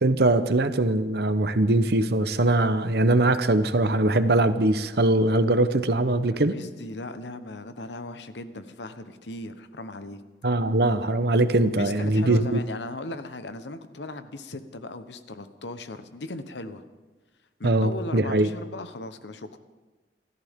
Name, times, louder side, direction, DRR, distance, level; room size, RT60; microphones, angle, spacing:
voice 1, 0.0-6.5 10.4-12.6 17.6-18.5, right 2 dB, 60° right, 11 dB, 0.9 m, -22 dB
voice 2, 6.5-10.2 11.7-16.8 17.6-19.6, left 2 dB, 80° left, 10 dB, 1.1 m, -37 dB
28.0 x 14.0 x 3.7 m, 1.3 s
head